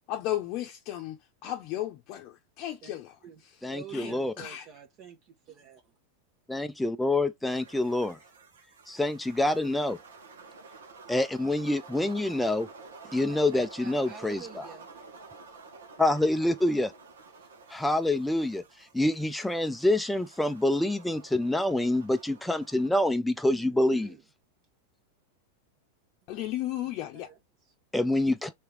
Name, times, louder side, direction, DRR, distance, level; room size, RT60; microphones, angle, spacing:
voice 1, 0.1-1.2 1.4-3.2 3.9-4.6 26.3-27.3, left 13 dB, 50° left, 0.6 m, -34 dB
voice 2, 2.8-3.4 3.7-5.9 13.0-15.1 23.4-24.2 27.1-27.7, right 8 dB, 45° right, 0.8 m, -49 dB
voice 3, 3.6-4.3 6.5-8.2 8.9-10.0 11.1-12.7 13.1-14.7 16.0-16.9 17.7-18.6 18.9-24.1 27.9-28.5, left 1 dB, 5° left, 0.3 m, -26 dB
sound 1, 7.4-22.9, right 4 dB, 85° right, 1.1 m, -50 dB
3.4 x 2.9 x 3.2 m
hypercardioid pair, 115°, 0 cm